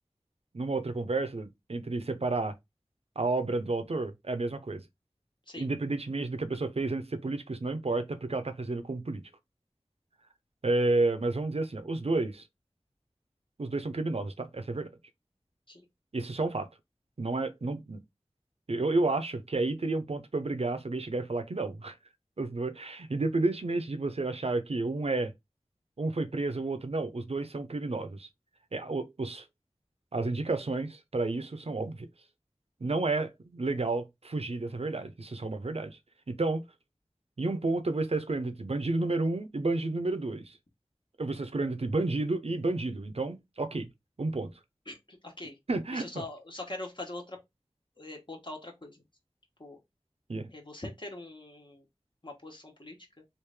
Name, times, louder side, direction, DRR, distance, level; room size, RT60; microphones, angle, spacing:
voice 1, 0.5-2.6 3.2-4.8 5.6-9.2 10.6-12.4 13.6-14.9 16.1-16.7 17.2-18.0 18.7-22.0 22.4-25.3 26.0-28.3 28.7-29.4 30.1-32.1 32.8-36.0 36.3-36.6 37.4-40.6 41.2-43.9 44.2-44.5 45.7-46.1 50.3-50.5, right 2 dB, 65° right, 0.6 m, -31 dB
voice 2, 44.9-45.6 45.9-47.4 48.0-49.0 49.6-49.8 50.5-51.9 52.2-53.2, left 2 dB, 45° left, 1.1 m, -43 dB
3.2 x 2.5 x 3.3 m
wide cardioid pair, 45°, 11 cm